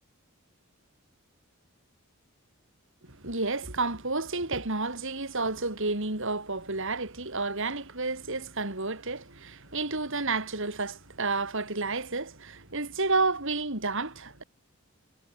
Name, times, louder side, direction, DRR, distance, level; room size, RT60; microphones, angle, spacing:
voice 1, 3.0-14.4, right 3 dB, 60° right, 4.4 m, -31 dB
head